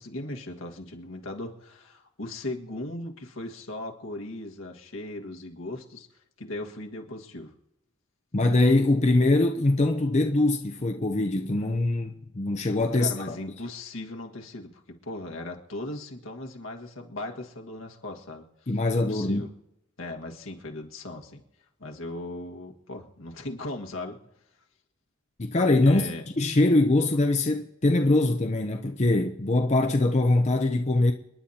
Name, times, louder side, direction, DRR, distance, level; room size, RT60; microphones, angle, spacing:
voice 1, 0.0-6.1 6.4-7.5 12.9-18.4 18.9-19.5 20.0-21.4 21.8-24.2 25.8-26.2, left 2 dB, 80° left, 1.7 m, -38 dB
voice 2, 8.3-13.4 18.7-19.4 25.4-26.0 26.4-31.1, left 2 dB, 35° left, 0.7 m, -23 dB
29.5 x 10.5 x 2.8 m
head